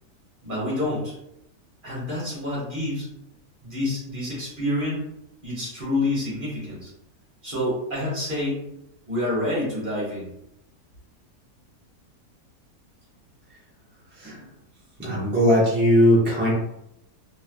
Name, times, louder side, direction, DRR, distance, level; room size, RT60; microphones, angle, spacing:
voice 1, 0.4-1.1 1.8-3.1 3.6-5.0 5.4-6.9 7.4-8.6 9.1-10.3, left 1 dB, 35° right, -7 dB, 1.3 m, -28 dB
voice 2, 15.0-16.5, equal, 10° right, -7 dB, 0.8 m, -19 dB
3.2 x 3.0 x 2.2 m, 0.79 s
omnidirectional pair, 1.7 m